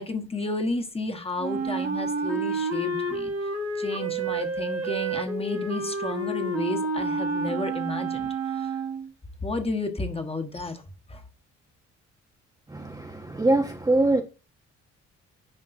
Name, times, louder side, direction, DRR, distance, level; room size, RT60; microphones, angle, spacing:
voice 1, 0.0-3.3 3.8-8.7 9.4-10.8 11.1-11.2, left 2 dB, 20° left, 1.3 m, -32 dB
Wind instrument woodwind instrument, 1.4-9.1, right 3 dB, 55° right, 1.5 m, -29 dB
voice 2, 12.7-14.2, right 2 dB, 10° right, 0.7 m, -23 dB
10.0 x 5.1 x 2.6 m
cardioid pair, 90°, 30 cm